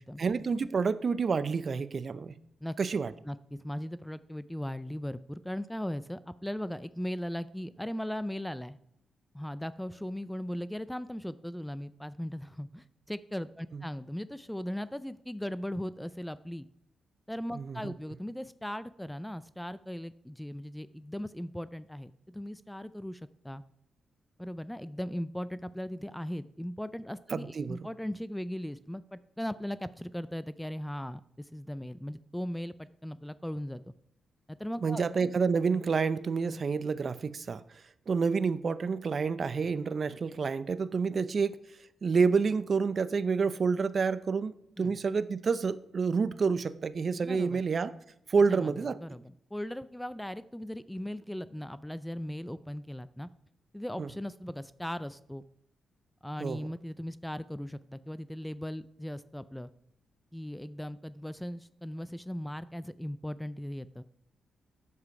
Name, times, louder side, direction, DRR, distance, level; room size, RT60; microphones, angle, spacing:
voice 1, 0.2-2.4 2.8-3.1 13.7-13.8 17.5-17.9 27.3-27.8 34.8-37.6 38.1-41.6 42.0-47.9 48.3-49.0 54.0-54.1 56.4-56.7, right 5 dB, 50° right, 0.6 m, -28 dB
voice 2, 3.2-8.8 9.3-16.7 17.3-23.6 24.4-33.8 34.5-35.3 44.8-45.0 47.2-47.6 48.5-53.3 53.7-55.4 56.2-59.7 60.3-64.0, equal, 5° left, 0.4 m, -38 dB
9.5 x 7.4 x 4.8 m
cardioid pair, 60°, 0 cm